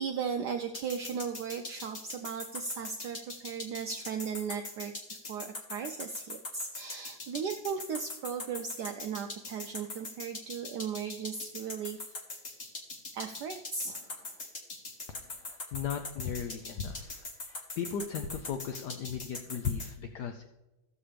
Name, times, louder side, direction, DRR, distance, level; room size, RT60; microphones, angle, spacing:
voice 1, 0.0-12.2 13.1-14.4, right 6 dB, 75° right, 5 dB, 0.9 m, -37 dB
sound 1, 0.7-19.9, left 2 dB, 40° left, 1.4 m, -41 dB
voice 2, 15.1-20.5, left 7 dB, 70° left, 6 dB, 1.0 m, -37 dB
15.0 x 7.2 x 3.3 m, 1.0 s
omnidirectional pair, 2.3 m